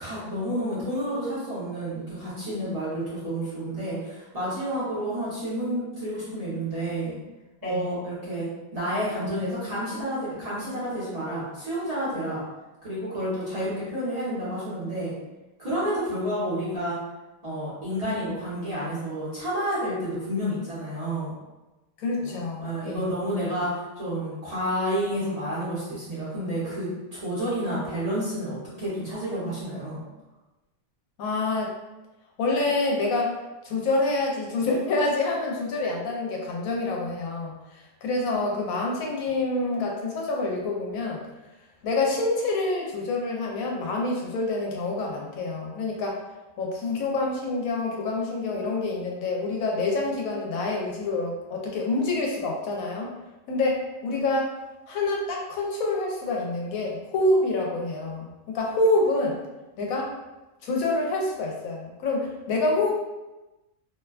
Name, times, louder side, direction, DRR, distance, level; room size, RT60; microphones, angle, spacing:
voice 1, 0.0-7.2 7.6-8.5 8.7-12.4 12.8-15.1 15.6-17.0 17.4-21.3 22.2-22.3 22.6-30.0, equal, 35° right, -11 dB, 0.8 m, -30 dB
voice 2, 22.0-23.1 31.2-31.7 32.4-33.3 33.6-37.5 38.0-41.2 41.8-46.2 46.6-53.1 53.5-53.8 54.0-54.5 54.9-58.3 58.5-59.3 59.8-60.1 60.6-62.9, left 2 dB, 85° left, -1 dB, 1.0 m, -27 dB
2.6 x 2.1 x 2.3 m, 1.1 s
omnidirectional pair, 1.4 m